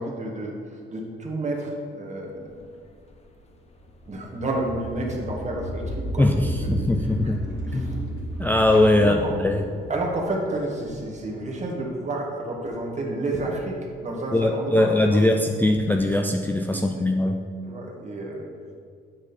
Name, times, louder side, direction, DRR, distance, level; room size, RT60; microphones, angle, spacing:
voice 1, 0.0-2.6 4.1-6.9 7.2-7.4 7.7-8.0 9.0-9.3 9.9-15.2 16.7-17.0 17.6-18.5, right 2 dB, 35° right, -1 dB, 1.6 m, -30 dB
sound 1, 2.6-11.5, right 1 dB, 35° left, 0.9 m, -33 dB
voice 2, 6.2-7.4 7.7-7.9 8.4-9.6 14.3-17.4, left 1 dB, 10° left, 3 dB, 0.4 m, -21 dB
sound 2, 6.6-9.5 9.8-10.1 10.7-11.2 13.2-13.7 15.6-16.1, right 2 dB, 55° right, 1.8 m, -44 dB
8.7 x 5.0 x 4.2 m, 2.1 s
cardioid pair, 90°, 20 cm